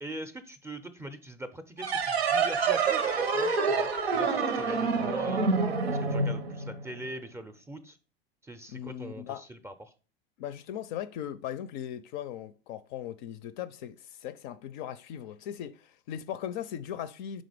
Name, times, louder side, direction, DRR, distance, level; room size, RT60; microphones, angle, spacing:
voice 1, 0.0-5.4 5.9-8.0 8.4-9.9, right 1 dB, 10° right, 0.5 m, -42 dB
sound 1, 1.8-7.0, right 4 dB, 85° right, 0.7 m, -27 dB
voice 2, 8.7-9.4 10.4-17.4, left 10 dB, 50° left, 0.4 m, -38 dB
5.1 x 3.8 x 4.9 m
hypercardioid pair, 85°, 30 cm